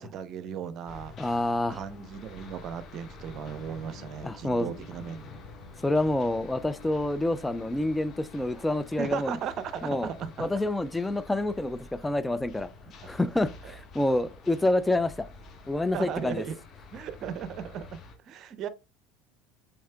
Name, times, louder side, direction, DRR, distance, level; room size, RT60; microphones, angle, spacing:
voice 1, 0.0-1.1 1.7-5.4 9.0-10.5 13.0-13.1 13.6-13.7 15.9-16.6 16.9-18.0 18.2-18.7, right 8 dB, 50° right, 0.7 m, -36 dB
sound 1, 0.9-18.1, left 3 dB, 45° left, 1.2 m, -48 dB
voice 2, 1.2-1.8 4.2-4.7 5.8-9.4 9.8-10.1 10.4-12.7 13.1-15.3 15.7-16.4, left 1 dB, 10° left, 0.3 m, -27 dB
sound 2, 3.3-8.5, left 5 dB, 85° left, 1.3 m, -52 dB
6.4 x 3.5 x 2.2 m
hypercardioid pair, 80°, 0 cm